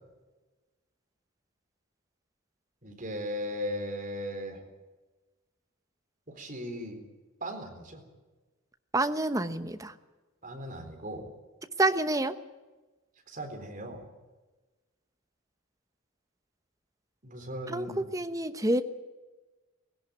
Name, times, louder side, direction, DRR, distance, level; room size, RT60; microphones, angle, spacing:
voice 1, 2.8-4.6 6.3-7.0 7.4-8.0 10.4-11.3 13.3-14.0 17.2-18.0, equal, 40° right, 3 dB, 4.0 m, -37 dB
voice 2, 8.9-9.9 11.8-12.4 17.7-18.8, right 2 dB, 15° right, 10 dB, 0.9 m, -28 dB
17.0 x 17.0 x 9.3 m, 1.2 s
head